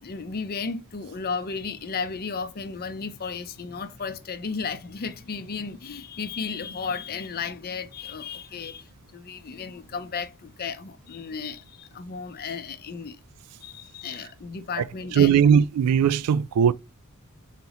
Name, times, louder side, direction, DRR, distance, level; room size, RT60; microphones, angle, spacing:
voice 1, 0.0-13.2 13.6-15.4, left 5 dB, 45° left, 0.5 m, -34 dB
voice 2, 14.8-16.7, right 7 dB, 90° right, 0.3 m, -19 dB
4.0 x 3.0 x 3.9 m
head